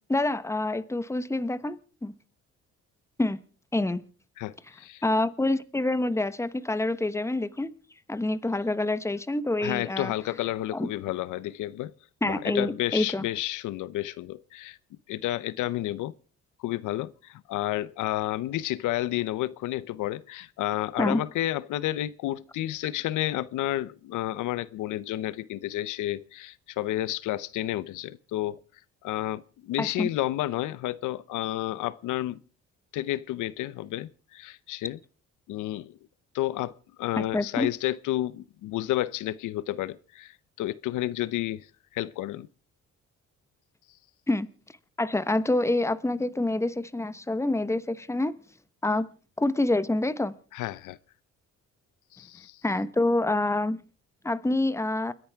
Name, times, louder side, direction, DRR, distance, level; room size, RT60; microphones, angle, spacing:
voice 1, 0.1-2.1 3.2-3.4 3.7-4.0 5.0-7.7 8.1-10.1 10.7-10.9 12.2-13.3 21.0-21.2 29.8-30.1 37.2-37.7 44.3-44.5 45.0-48.4 48.8-49.1 49.4-50.3 52.6-53.8 54.2-55.1, left 2 dB, 10° left, 1.0 m, -27 dB
voice 2, 4.4-5.0 9.6-11.9 12.2-14.8 15.1-16.1 16.6-28.6 29.0-32.4 32.9-35.0 35.5-36.0 36.3-41.7 41.9-42.5 50.5-51.0 52.1-52.6, left 15 dB, 85° left, 0.7 m, -31 dB
29.5 x 10.5 x 3.5 m
cardioid pair, 90°, 30 cm